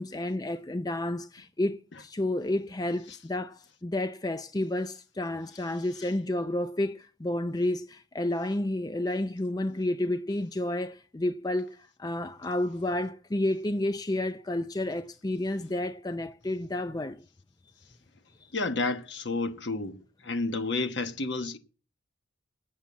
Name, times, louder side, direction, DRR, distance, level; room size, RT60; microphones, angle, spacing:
voice 1, 0.0-17.2, left 1 dB, 20° left, 0.5 m, -30 dB
voice 2, 18.5-20.0 20.2-21.6, left 3 dB, 60° left, 1.2 m, -30 dB
9.0 x 7.4 x 8.3 m
head